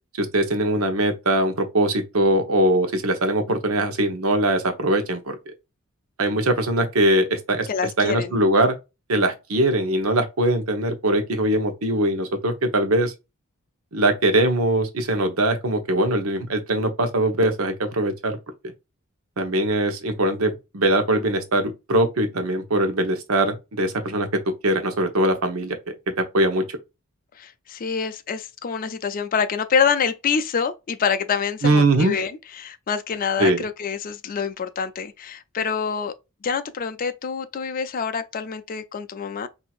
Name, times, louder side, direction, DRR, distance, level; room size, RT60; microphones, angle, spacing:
voice 1, 0.2-5.4 6.2-7.7 8.0-8.8 9.1-13.1 13.9-18.4 19.4-25.8 26.2-26.8 31.6-32.2 33.4-33.6, right 1 dB, 80° right, 0.9 m, -21 dB
voice 2, 7.7-8.4 27.4-36.1 36.4-39.5, left 6 dB, 40° left, 0.4 m, -26 dB
4.3 x 2.7 x 2.3 m
head